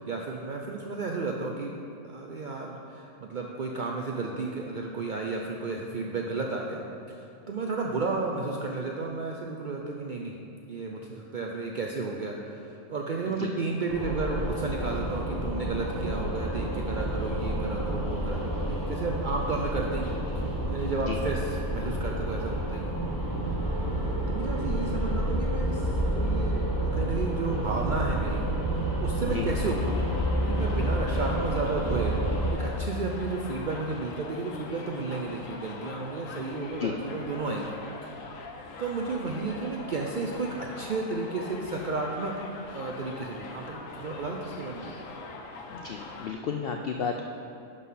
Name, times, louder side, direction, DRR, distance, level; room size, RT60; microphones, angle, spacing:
voice 1, 0.0-1.7 2.0-6.8 7.1-7.2 7.5-10.3 10.7-22.9 24.3-28.5 28.7-32.2 32.5-37.8 38.0-38.2 38.8-42.4 42.7-44.9, right 3 dB, 75° right, 0 dB, 0.4 m, -33 dB
sound 1, 13.9-32.5, right 1 dB, 15° left, 1.0 m, -29 dB
Subway metro underground, 29.6-46.3, left 3 dB, 65° left, 1.1 m, -43 dB
voice 2, 45.7-47.3, left 7 dB, 85° left, 3 dB, 0.5 m, -32 dB
11.0 x 4.1 x 5.6 m, 2.5 s
omnidirectional pair, 1.5 m